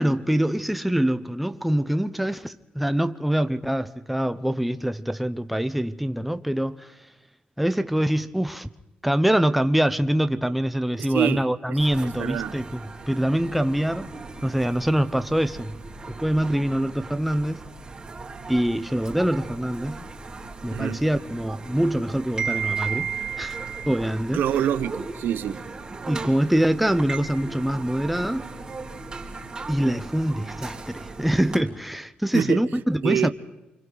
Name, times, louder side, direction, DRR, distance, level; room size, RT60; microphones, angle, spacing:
voice 1, 0.0-7.0 7.6-8.7 9.0-12.8 13.1-14.1 14.4-15.8 16.1-17.6 18.5-20.1 20.6-23.1 23.4-23.6 23.9-24.4 26.1-28.5 29.7-33.3, right 1 dB, ahead, 0.7 m, -24 dB
voice 2, 11.0-11.8 12.2-12.5 20.7-21.0 24.3-25.6 32.3-32.6 33.0-33.3, right 10 dB, 85° right, 1.1 m, -26 dB
sound 1, 11.8-31.6, right 5 dB, 25° right, 2.9 m, -36 dB
29.5 x 25.0 x 4.1 m
cardioid pair, 140°, 3 cm